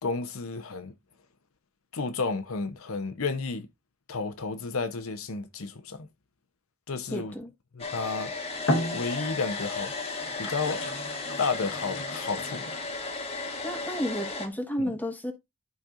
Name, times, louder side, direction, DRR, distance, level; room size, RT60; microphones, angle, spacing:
voice 1, 0.0-0.9 1.9-3.7 4.1-6.1 6.9-7.3 7.7-8.3 8.9-9.9 10.4-10.8 11.4-12.8, left 4 dB, 80° left, 0.8 m, -32 dB
voice 2, 7.1-7.5 13.6-15.3, equal, 10° left, 1.3 m, -32 dB
Domestic sounds home sounds, 7.8-14.5, left 3 dB, 30° left, 1.4 m, -35 dB
sound 1, 8.6-9.6 10.2-13.0, left 1 dB, 60° left, 1.2 m, -33 dB
11.5 x 5.2 x 2.5 m
head